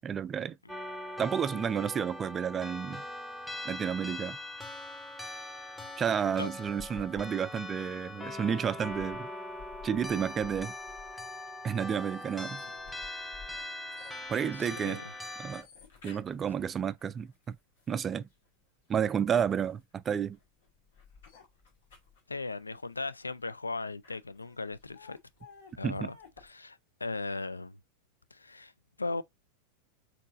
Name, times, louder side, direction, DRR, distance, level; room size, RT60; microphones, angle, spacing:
voice 1, 0.0-0.6 1.2-3.0 3.7-4.4 6.0-9.3 9.8-10.7 11.6-12.6 14.3-15.0 15.4-15.6 16.0-17.6 17.9-18.3 18.9-20.4 25.8-26.1, right 8 dB, 20° right, 0.3 m, -31 dB
sound 1, 0.7-15.6, left 1 dB, 5° left, 0.9 m, -41 dB
sound 2, 6.6-18.3 18.9-26.5, left 6 dB, 60° left, 1.8 m, -55 dB
voice 2, 14.5-15.0 22.3-25.2 25.8-26.2 26.4-27.8 28.3-28.7 29.0-29.2, left 3 dB, 80° left, 0.3 m, -37 dB
4.4 x 4.1 x 2.5 m
figure-of-eight pair, 90°, 0 cm